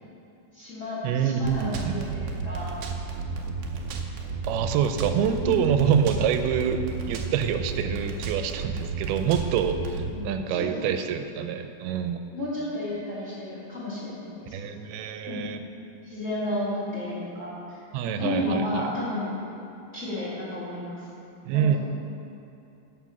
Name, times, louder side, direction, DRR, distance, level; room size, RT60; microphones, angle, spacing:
voice 1, 0.5-2.7 5.4-5.6 10.1-10.8 12.3-14.6 15.3-15.4 16.0-17.8 18.2-19.3 19.9-21.1 21.5-21.8, left 1 dB, 20° left, -9 dB, 2.5 m, -32 dB
voice 2, 1.0-2.2 4.4-6.8 7.1-12.2 14.5-15.6 17.9-18.8 21.5-21.8, right 8 dB, 90° right, 8 dB, 2.6 m, -26 dB
sound 1, 1.4-10.1, right 4 dB, 75° right, 1.9 m, -33 dB
14.0 x 5.4 x 5.9 m, 2.8 s
omnidirectional pair, 4.4 m